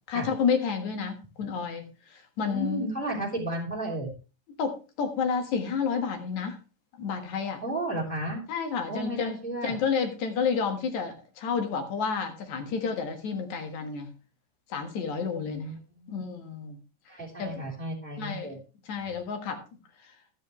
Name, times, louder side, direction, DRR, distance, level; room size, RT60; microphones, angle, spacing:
voice 1, 0.1-2.9 4.6-6.6 7.0-7.6 8.5-9.4 9.6-14.1 14.7-15.7 16.1-16.8 17.4-17.6 18.2-18.5 18.9-19.6, left 6 dB, 60° left, 5 dB, 2.7 m, -30 dB
voice 2, 2.4-4.1 7.6-8.4 8.9-9.8 15.3-15.8 16.0-16.1 17.1-18.6, right 1 dB, ahead, -2 dB, 3.7 m, -33 dB
12.0 x 10.5 x 3.1 m, 0.32 s
omnidirectional pair, 4.1 m